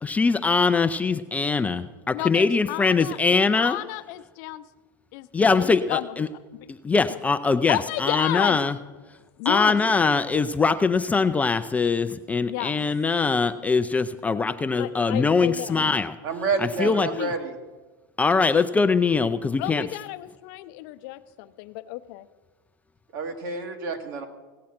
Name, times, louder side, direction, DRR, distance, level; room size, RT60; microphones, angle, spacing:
voice 1, 0.0-3.8 5.3-6.3 6.8-8.8 9.4-16.2 16.6-17.1 18.2-19.9, left 4 dB, 10° left, 9 dB, 0.4 m, -22 dB
voice 2, 2.1-4.6 5.1-6.2 7.7-8.6 9.4-9.7 12.4-12.7 14.8-15.8 16.8-17.3 19.6-22.3, left 18 dB, 55° left, 11 dB, 0.7 m, -32 dB
voice 3, 16.2-17.5 23.1-24.3, right 4 dB, 65° right, 4 dB, 1.8 m, -29 dB
16.5 x 7.5 x 5.8 m, 1.3 s
supercardioid pair, 125°, 12 cm